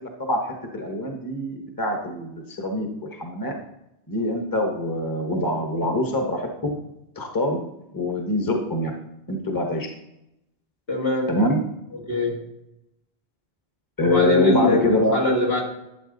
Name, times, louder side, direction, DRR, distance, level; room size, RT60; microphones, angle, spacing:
voice 1, 0.0-3.5 4.1-6.7 7.2-7.6 7.9-8.9 9.3-9.9 11.3-11.6 14.0-15.2, left 1 dB, 20° left, 3 dB, 1.2 m, -24 dB
voice 2, 10.9-11.3 11.9-12.4 14.0-15.6, left 1 dB, 65° left, -1 dB, 2.5 m, -23 dB
12.0 x 7.3 x 3.9 m, 0.86 s
omnidirectional pair, 1.1 m